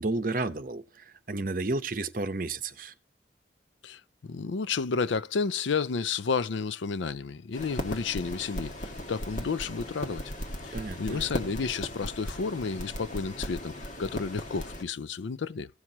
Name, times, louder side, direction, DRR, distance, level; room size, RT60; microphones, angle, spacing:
voice 1, 0.0-2.9 10.7-11.3, right 2 dB, 50° right, 0.8 m, -32 dB
voice 2, 3.8-10.2 10.6-13.7 14.0-15.7, left 5 dB, 90° left, 0.5 m, -31 dB
sound 1, 7.5-14.8, left 1 dB, 40° left, 1.7 m, -37 dB
17.0 x 6.0 x 2.8 m
head